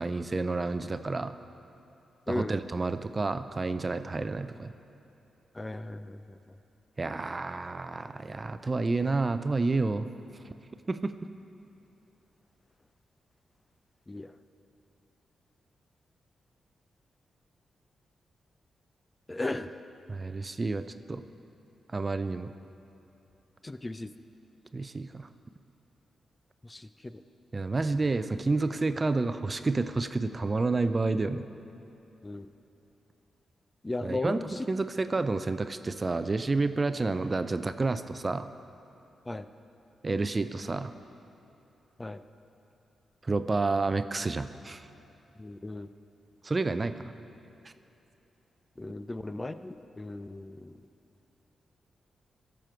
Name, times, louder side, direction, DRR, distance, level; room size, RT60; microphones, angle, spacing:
voice 1, 0.0-1.3 2.3-4.7 7.0-10.1 10.9-11.1 20.1-21.2 21.9-22.5 24.7-25.3 27.5-31.4 34.0-34.4 34.7-38.5 40.0-40.9 43.2-44.9 46.4-47.1, right 3 dB, 35° right, 11 dB, 0.5 m, -29 dB
voice 2, 5.5-6.4 14.1-14.3 19.3-19.7 23.6-24.1 26.6-27.2 32.2-32.5 33.8-34.7 39.3-39.5 42.0-42.2 45.4-45.9 48.8-50.8, left 2 dB, 25° left, 11 dB, 0.4 m, -36 dB
15.0 x 6.3 x 4.5 m, 2.9 s
supercardioid pair, 50°, 0 cm